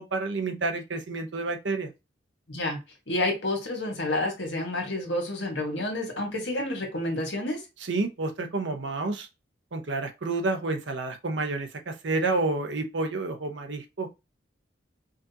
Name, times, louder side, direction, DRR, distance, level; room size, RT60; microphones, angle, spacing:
voice 1, 0.0-1.9 7.8-9.3 9.7-14.1, right 3 dB, 75° right, 0.8 m, -29 dB
voice 2, 2.5-2.8 3.1-7.6, left 1 dB, 75° left, 1.6 m, -29 dB
4.9 x 2.5 x 2.8 m
head